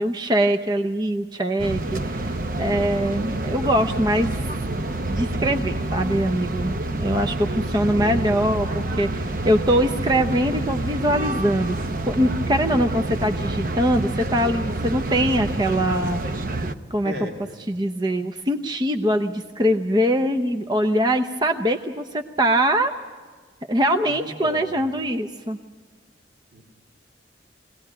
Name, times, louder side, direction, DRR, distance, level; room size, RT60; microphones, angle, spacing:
voice 1, 0.0-2.3 2.6-4.3 5.1-9.1 9.4-16.2 16.9-17.3 17.7-22.9 23.7-25.6, equal, 25° right, 6 dB, 0.7 m, -22 dB
sound 1, 1.6-16.8, right 2 dB, 50° right, 0.9 m, -27 dB
voice 2, 7.4-8.3 9.2-9.3 17.0-17.5 24.0-24.8 26.5-26.7, left 1 dB, 65° right, 1 dB, 3.0 m, -36 dB
23.0 x 18.0 x 10.0 m, 1.5 s
head